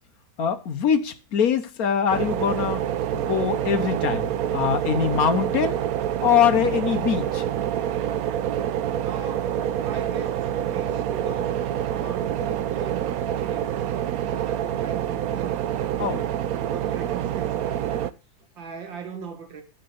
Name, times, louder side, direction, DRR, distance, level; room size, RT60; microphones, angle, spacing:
voice 1, 0.4-2.9 3.1-5.8 6.2-7.4 16.0-16.2, left 7 dB, 55° left, 1.2 m, -23 dB
sound 1, 2.1-18.1, right 10 dB, 85° right, 0.7 m, -27 dB
voice 2, 9.0-11.6 11.9-18.1 18.4-19.6, right 6 dB, 65° right, 2.3 m, -40 dB
11.5 x 4.5 x 6.8 m
omnidirectional pair, 2.3 m